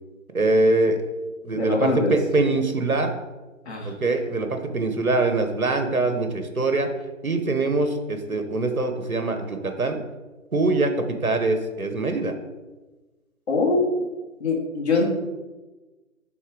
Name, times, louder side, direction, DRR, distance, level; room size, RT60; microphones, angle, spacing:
voice 1, 0.3-1.0 1.4-3.1 3.8-6.9 7.2-10.0 10.5-12.3, right 2 dB, 85° right, 7 dB, 1.1 m, -23 dB
voice 2, 1.5-2.2 3.7-3.9 13.5-14.1 14.4-15.0, left 3 dB, 50° left, -2 dB, 2.3 m, -23 dB
11.0 x 4.2 x 3.7 m, 1.2 s
figure-of-eight pair, 145°, 41 cm